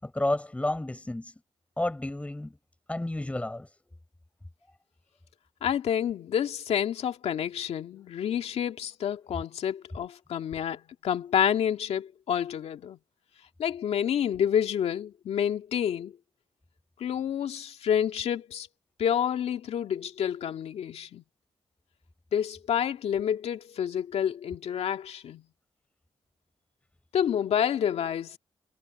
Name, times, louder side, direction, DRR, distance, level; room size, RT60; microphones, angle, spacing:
voice 1, 0.0-1.3 1.8-2.6 2.9-3.7, left 1 dB, 10° left, 6.4 m, -31 dB
voice 2, 5.6-13.0 13.6-16.1 17.0-18.7 19.0-21.2 22.3-25.4 27.1-28.4, left 9 dB, 75° left, 2.0 m, -28 dB
cardioid pair, 90°, 11 cm